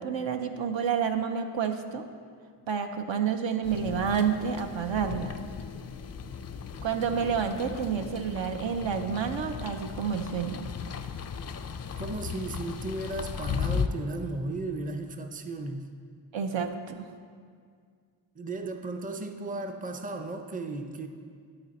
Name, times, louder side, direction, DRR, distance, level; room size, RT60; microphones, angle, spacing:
voice 1, 0.0-2.0 2.7-5.4 6.8-10.7 16.3-17.1, right 7 dB, 65° right, 7 dB, 0.6 m, -29 dB
sound 1, 3.6-13.9, left 6 dB, 35° left, 0.4 m, -36 dB
voice 2, 11.9-15.9 18.4-21.1, right 2 dB, 15° right, 6 dB, 0.5 m, -35 dB
11.5 x 4.2 x 4.1 m, 2.1 s
cardioid pair, 50°, 49 cm